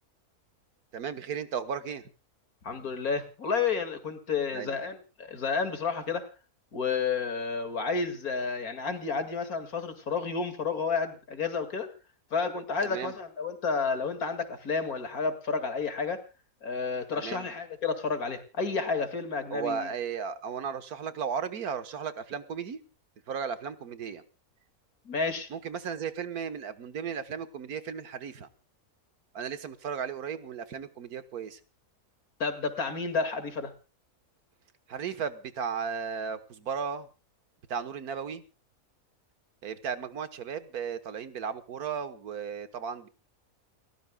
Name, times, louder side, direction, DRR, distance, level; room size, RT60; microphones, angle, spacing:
voice 1, 0.9-2.1 4.5-4.8 12.8-13.1 17.2-17.5 19.5-22.8 23.3-24.2 25.5-28.5 29.3-31.6 34.9-37.1 37.7-38.4 39.6-43.1, right 7 dB, 85° right, 11 dB, 1.8 m, -35 dB
voice 2, 2.6-6.3 6.7-11.9 12.3-16.2 16.6-19.9 25.1-25.5 32.4-33.7, left 5 dB, 75° left, 8 dB, 2.7 m, -31 dB
29.5 x 14.0 x 2.3 m, 0.32 s
omnidirectional pair, 1.5 m